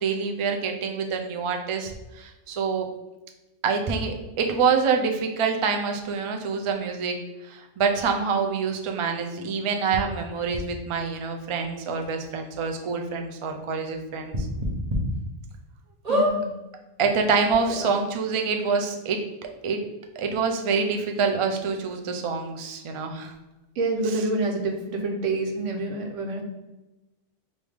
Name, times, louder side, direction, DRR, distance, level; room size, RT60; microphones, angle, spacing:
voice 1, 0.0-1.9 2.2-2.9 3.6-7.1 7.5-14.3 17.0-19.2 19.6-19.8 20.2-23.3, right 5 dB, 55° right, 4 dB, 0.3 m, -26 dB
sound 1, 9.9-10.0 10.5-10.6 11.6-11.7 12.0-12.1 12.5-12.6 14.3-15.0 15.5-15.6 16.0-16.3 17.2-17.3 17.4-17.5, equal, 35° right, 0.9 m, -25 dB
voice 2, 16.1-16.5 17.7-17.9 23.8-26.4, right 2 dB, 90° right, 2 dB, 1.1 m, -27 dB
4.8 x 2.7 x 3.5 m, 1.0 s
omnidirectional pair, 1.2 m